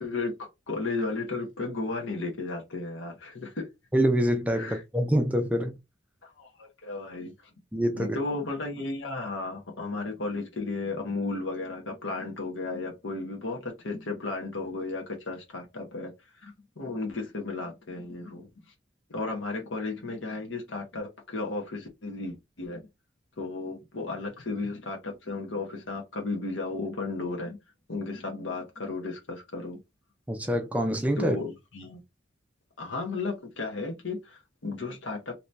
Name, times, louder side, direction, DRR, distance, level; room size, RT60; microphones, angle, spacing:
voice 1, 0.0-3.7 4.6-4.8 6.2-7.3 7.9-16.1 16.4-18.5 19.1-22.9 23.4-27.6 27.9-29.8 31.2-32.0 32.8-35.3, left 3 dB, 90° left, 1.0 m, -34 dB
voice 2, 3.9-5.7 7.7-8.2 30.3-31.4, equal, 10° right, 0.4 m, -25 dB
2.9 x 2.7 x 3.3 m
head